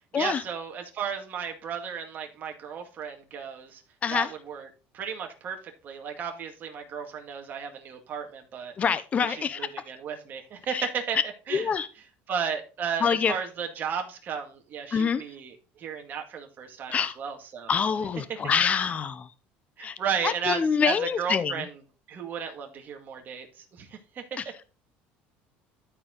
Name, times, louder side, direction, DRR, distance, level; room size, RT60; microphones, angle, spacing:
voice 1, 0.1-3.8 4.1-4.7 4.9-8.7 9.2-11.2 11.5-11.7 12.3-17.7 19.8-21.8 22.1-24.2, right 7 dB, 40° right, 3 dB, 2.0 m, -34 dB
voice 2, 8.8-9.7 10.7-10.9 11.5-11.9 13.0-13.3 14.9-15.2 16.9-17.2 17.7-19.3 19.8-19.9 20.2-21.6, left 6 dB, 30° left, 13 dB, 0.8 m, -26 dB
12.5 x 4.7 x 3.8 m, 0.34 s
cardioid pair, 125°, 5 cm